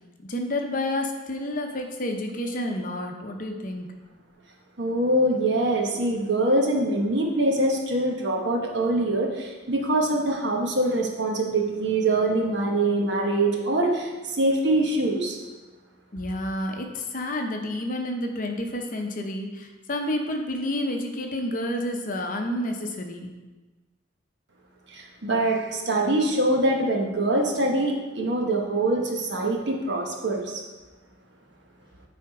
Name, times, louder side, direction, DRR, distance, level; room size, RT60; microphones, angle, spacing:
voice 1, 0.2-3.9 16.1-23.3, left 1 dB, 45° left, 3 dB, 0.8 m, -30 dB
voice 2, 4.8-15.4 24.9-30.6, right 1 dB, 65° right, 1 dB, 1.1 m, -24 dB
9.1 x 3.5 x 4.8 m, 1.2 s
head